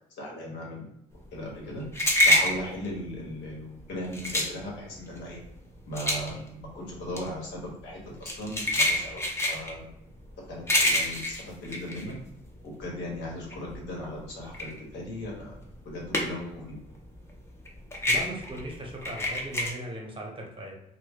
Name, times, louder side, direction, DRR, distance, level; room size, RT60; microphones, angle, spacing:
voice 1, 0.2-0.9 1.3-1.8 2.2-5.4 5.9-9.9 10.5-12.2 12.6-15.6 15.8-16.8, left 1 dB, 75° left, -3 dB, 1.0 m, -38 dB
sound 1, 1.2-12.8 13.2-16.6 16.9-19.7, left 1 dB, 15° left, 0.6 m, -27 dB
voice 2, 18.1-20.8, right 1 dB, 30° right, -1 dB, 0.9 m, -38 dB
2.1 x 2.1 x 3.3 m, 0.79 s
supercardioid pair, 65°, 18 cm